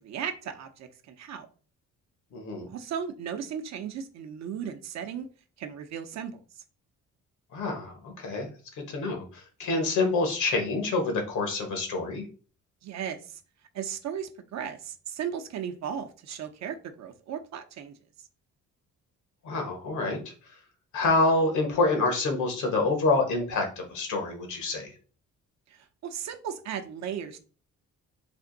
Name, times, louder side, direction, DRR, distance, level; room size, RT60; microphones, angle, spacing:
voice 1, 0.0-1.5 2.7-5.3 5.6-6.4 12.8-13.4 13.7-17.9 25.7-27.4, right 8 dB, 65° right, 6 dB, 0.7 m, -36 dB
voice 2, 2.3-2.7 7.5-8.5 8.7-12.2 19.4-20.3 20.9-24.9, left 3 dB, 75° left, 4 dB, 1.3 m, -27 dB
3.4 x 2.6 x 3.9 m, 0.38 s
cardioid pair, 90°, 30 cm